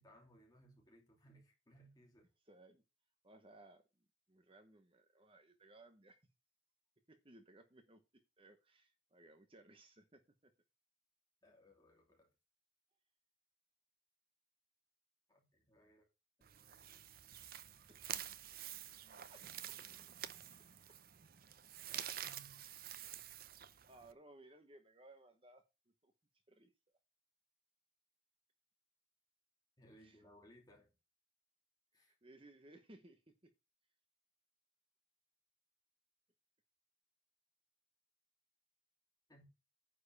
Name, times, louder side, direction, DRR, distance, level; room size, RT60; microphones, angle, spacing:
voice 1, 0.0-2.3 11.4-12.3 15.3-16.1 16.6-16.7 22.2-22.6 29.8-30.9 31.9-32.1 39.3-39.4, right 1 dB, 20° left, 2.9 m, -64 dB
voice 2, 2.5-2.8 3.2-3.8 4.3-6.2 7.1-10.5 17.9-18.7 19.3-19.8 23.9-25.6 26.0-26.1 26.5-26.7 29.9-30.3 31.9-33.5, right 2 dB, 25° right, 1.0 m, -62 dB
sound 1, 16.4-24.1, right 11 dB, 45° right, 0.6 m, -49 dB
9.9 x 4.6 x 6.9 m
head